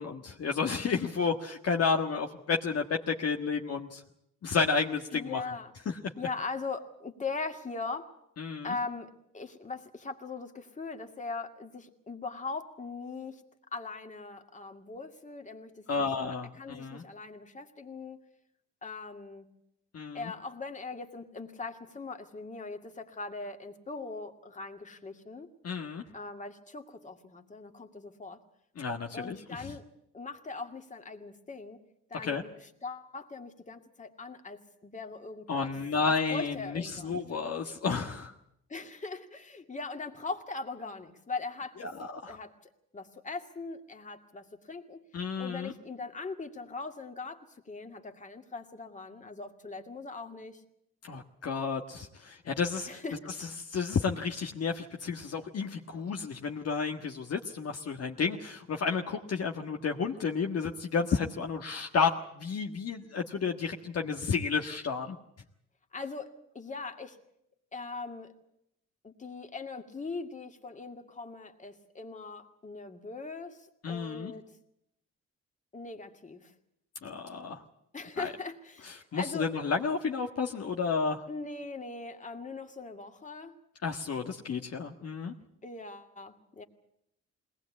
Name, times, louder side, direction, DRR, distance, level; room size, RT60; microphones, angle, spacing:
voice 1, 0.0-4.0 4.4-5.4 5.8-6.0 8.4-8.7 15.9-17.0 19.9-20.3 25.6-26.0 28.8-29.7 32.2-32.4 35.5-38.3 41.8-42.4 45.1-45.7 51.0-53.0 53.4-65.2 73.8-74.3 77.0-77.6 78.2-78.3 78.8-81.2 83.8-85.3, left 5 dB, 55° left, 3 dB, 1.6 m, -31 dB
voice 2, 5.1-5.7 6.2-8.1 8.6-13.4 13.7-16.1 16.6-18.2 18.8-19.5 20.1-25.5 26.1-28.4 29.1-29.8 30.1-31.8 32.1-35.7 36.3-37.2 38.7-41.9 42.2-45.0 45.4-50.6 52.9-53.3 65.9-67.2 67.7-68.3 69.0-74.5 75.7-76.5 77.9-79.5 81.3-83.6 85.6-86.6, left 3 dB, 25° left, 5 dB, 2.3 m, -40 dB
21.5 x 19.0 x 8.5 m, 0.77 s
cardioid pair, 90°, 30 cm